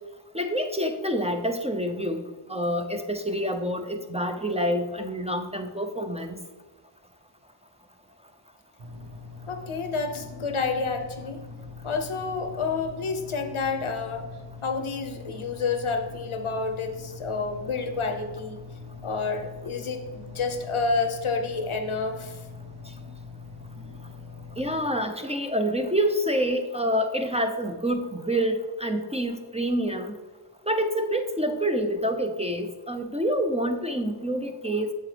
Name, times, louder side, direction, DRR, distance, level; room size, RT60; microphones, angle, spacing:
voice 1, 0.3-6.4 24.6-30.2 30.6-34.9, equal, 15° right, 5 dB, 0.5 m, -27 dB
sound 1, 8.8-24.9, left 4 dB, 55° right, 1.0 m, -43 dB
voice 2, 9.5-11.4 11.8-14.3 14.6-18.6 19.0-22.4, left 4 dB, 85° left, 7 dB, 0.8 m, -29 dB
7.7 x 6.9 x 3.3 m, 1.3 s
wide cardioid pair, 45°, 48 cm